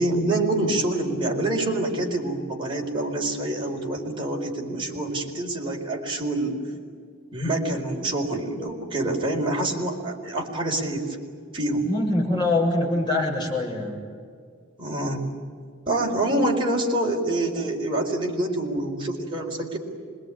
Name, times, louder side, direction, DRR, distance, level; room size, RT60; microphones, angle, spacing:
voice 1, 0.0-6.6 7.3-11.2 11.5-11.9 14.8-15.3 15.9-19.8, right 1 dB, 25° right, -1 dB, 4.7 m, -26 dB
voice 2, 11.9-14.0, left 2 dB, 25° left, -1 dB, 7.0 m, -24 dB
26.0 x 22.0 x 10.0 m, 2.1 s
head